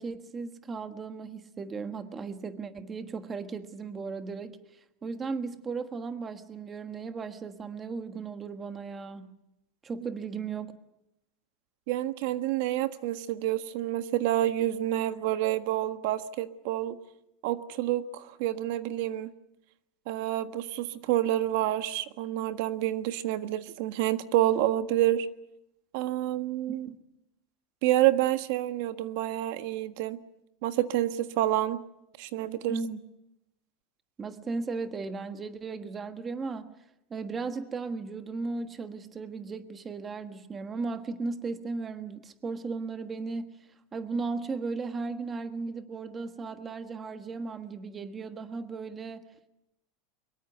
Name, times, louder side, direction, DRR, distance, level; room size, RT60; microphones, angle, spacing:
voice 1, 0.0-4.6 5.0-9.4 9.8-10.7 26.9-27.0 32.7-33.0 34.2-36.7 37.1-43.5 43.9-49.2, right 4 dB, 15° right, 8 dB, 1.4 m, -36 dB
voice 2, 11.9-17.0 17.4-19.3 20.1-25.3 25.9-26.9 27.8-30.2 30.6-31.8 32.2-32.7, right 14 dB, 60° right, 10 dB, 1.4 m, -28 dB
23.5 x 22.5 x 8.2 m, 0.86 s
supercardioid pair, 165°, 0 cm